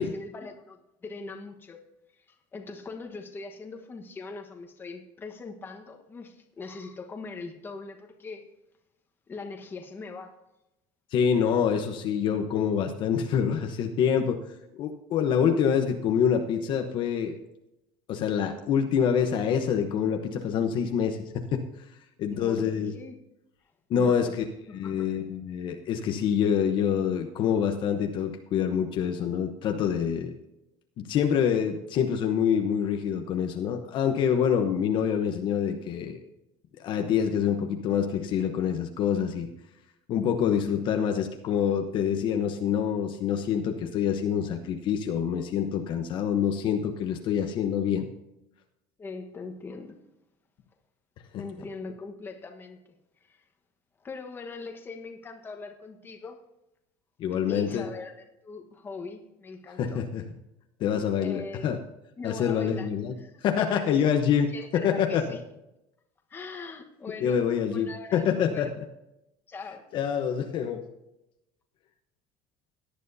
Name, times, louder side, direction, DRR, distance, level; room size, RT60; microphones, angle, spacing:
voice 1, 0.0-1.8 2.3-8.5 9.3-10.3 22.3-23.2 23.9-24.3 24.7-25.1 49.0-50.0 51.3-52.8 53.2-53.4 54.0-56.4 57.5-60.0 61.2-61.7 62.2-62.9 63.2-64.0 64.5-65.4 66.3-67.4 67.7-68.7 69.5-69.9, left 4 dB, 20° left, 1.3 m, -41 dB
voice 2, 11.1-14.4 14.7-17.4 18.1-21.6 22.2-22.9 23.9-24.5 24.7-30.3 31.0-36.2 36.8-39.5 40.1-48.0 51.3-51.4 57.2-57.9 59.8-60.2 60.8-61.8 62.2-63.1 63.4-65.4 67.2-68.7 69.9-70.9, left 8 dB, 45° left, 1.0 m, -26 dB
17.5 x 10.0 x 2.8 m
cardioid pair, 155°, 11 cm